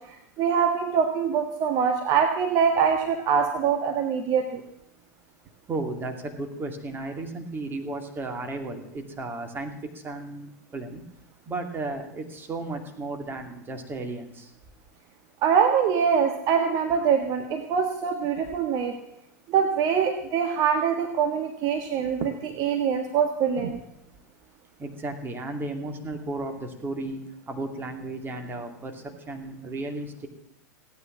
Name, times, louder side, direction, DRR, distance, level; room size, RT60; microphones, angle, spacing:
voice 1, 0.1-4.6 15.4-18.9 19.5-23.8, right 7 dB, 45° right, 5 dB, 1.5 m, -24 dB
voice 2, 5.7-11.0 11.5-14.5 24.8-27.2 27.5-30.3, right 2 dB, 20° right, 5 dB, 2.6 m, -34 dB
16.5 x 9.7 x 7.4 m, 0.79 s
hypercardioid pair, 95°, 9 cm